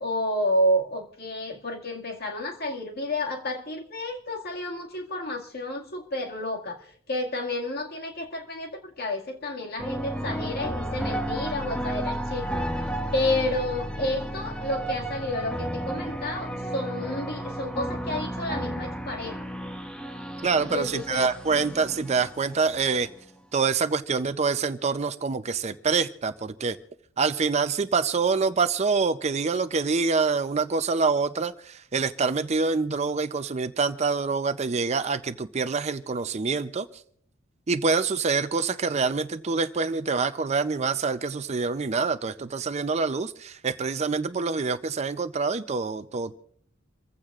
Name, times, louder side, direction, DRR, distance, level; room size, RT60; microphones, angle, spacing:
voice 1, 0.0-19.5 20.7-21.3, left 1 dB, 50° left, 1 dB, 2.0 m, -30 dB
sound 1, 9.8-23.2, right 1 dB, 5° left, 0.9 m, -33 dB
voice 2, 20.4-23.1 23.5-26.8 27.2-36.9 37.7-46.4, right 4 dB, 35° right, 11 dB, 0.5 m, -26 dB
27.0 x 15.5 x 2.4 m, 0.63 s
head